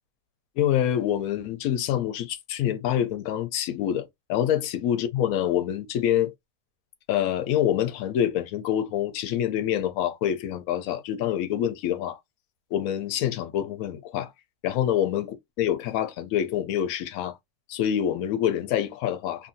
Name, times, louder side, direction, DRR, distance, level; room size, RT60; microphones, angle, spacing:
voice 1, 0.6-6.3 7.1-12.2 12.7-14.3 14.6-17.4 17.7-19.5, left 10 dB, 70° left, 0.9 m, -26 dB
2.7 x 2.6 x 2.6 m
omnidirectional pair, 1.8 m